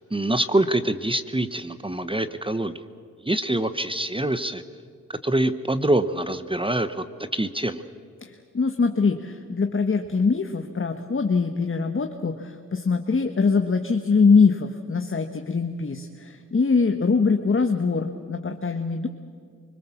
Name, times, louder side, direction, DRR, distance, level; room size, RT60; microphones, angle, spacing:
voice 1, 0.0-2.8 3.2-4.6 5.2-7.1 7.3-7.8, right 1 dB, 15° right, 11 dB, 1.1 m, -25 dB
voice 2, 8.2-19.1, left 4 dB, 40° left, 6 dB, 1.4 m, -23 dB
25.5 x 20.0 x 7.2 m, 2.2 s
cardioid pair, 55°, 33 cm